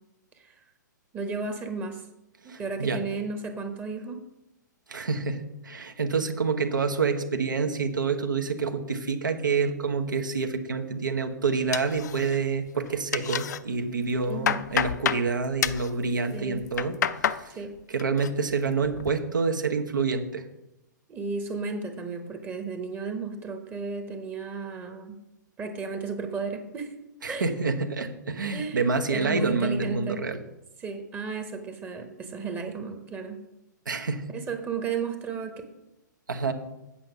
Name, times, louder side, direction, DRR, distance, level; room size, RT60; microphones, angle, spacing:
voice 1, 1.1-2.1 2.4-4.2 14.3-14.6 16.3-16.6 17.5-17.7 21.1-25.2 25.6-26.9 27.3-27.5 28.5-28.8 29.1-30.2 30.8-33.4 34.3-35.6, right 4 dB, 20° right, 6 dB, 0.9 m, -34 dB
voice 2, 2.5-3.0 4.9-16.9 17.2-17.5 17.9-20.4 27.2-30.4 33.9-34.2 36.3-36.5, right 4 dB, 80° right, 5 dB, 1.1 m, -27 dB
sound 1, 11.7-12.6 12.9-13.6 14.0-15.3 15.6-15.9 16.5-17.4 17.8-18.3 18.7-19.1, left 8 dB, 60° left, 0.5 m, -29 dB
8.8 x 5.6 x 6.0 m, 0.92 s
figure-of-eight pair, 120°, 10 cm